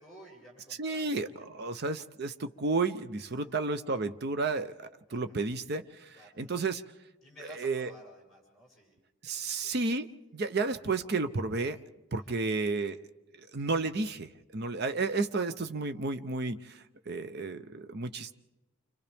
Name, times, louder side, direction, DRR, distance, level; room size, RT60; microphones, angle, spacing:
voice 1, 0.0-1.6 3.2-3.5 5.1-5.4 6.1-6.5 7.2-8.9 9.2-9.7 12.1-12.4, right 1 dB, ahead, -4 dB, 7.9 m, -54 dB
voice 2, 0.8-6.1 6.4-6.8 7.6-7.9 9.2-10.1 10.3-11.8 12.1-13.0 13.5-18.3, right 3 dB, 45° right, 10 dB, 0.6 m, -32 dB
29.5 x 26.0 x 3.5 m, 1.0 s
head